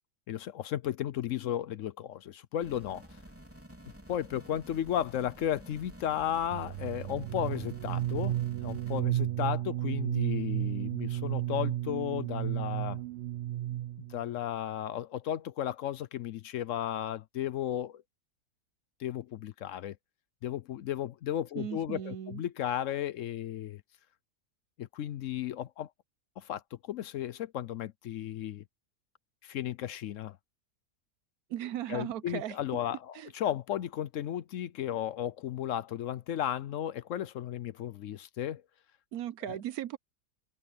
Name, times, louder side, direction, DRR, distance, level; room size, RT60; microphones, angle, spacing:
voice 1, 0.3-3.0 4.1-13.0 14.1-18.0 19.0-20.0 20.4-23.8 24.8-25.9 26.4-28.6 29.4-30.4 31.9-38.6 39.4-39.6, left 11 dB, 65° left, 0.9 m, -34 dB
sound 1, 2.6-9.0, equal, 10° right, 3.7 m, -51 dB
sound 2, 6.5-14.2, right 13 dB, 65° right, 0.7 m, -33 dB
voice 2, 21.6-22.4 31.5-32.6 33.1-33.3 39.1-40.0, right 11 dB, 80° right, 1.2 m, -37 dB
omnidirectional pair, 1.6 m